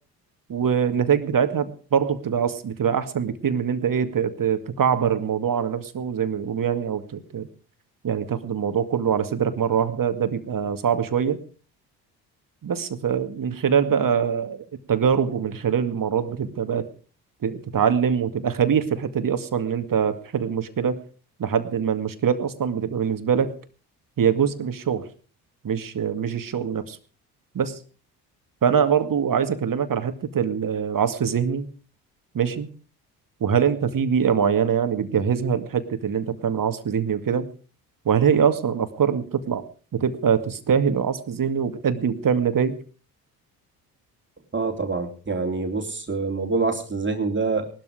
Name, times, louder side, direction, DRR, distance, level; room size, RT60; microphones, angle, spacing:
voice 1, 0.5-7.5 8.0-11.4 12.6-16.9 17.4-21.0 21.4-23.5 24.2-25.1 25.6-27.0 27.5-27.8 28.6-31.7 32.3-32.7 33.4-37.5 38.1-39.6 39.9-42.8, right 7 dB, 45° right, 10 dB, 2.2 m, -23 dB
voice 2, 44.5-47.7, right 4 dB, 25° right, 4 dB, 3.3 m, -26 dB
19.0 x 12.5 x 5.0 m, 0.39 s
hypercardioid pair, 50°, 47 cm